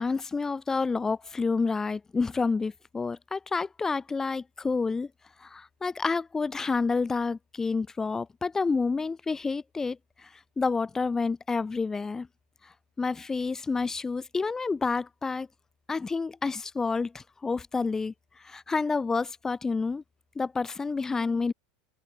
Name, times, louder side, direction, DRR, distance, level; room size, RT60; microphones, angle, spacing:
voice 1, 0.0-5.1 5.4-10.3 10.6-12.3 13.0-15.5 15.9-18.1 18.4-20.0 20.4-21.5, left 4 dB, 15° left, 4.1 m, -29 dB
open air
supercardioid pair, 150°, 4 cm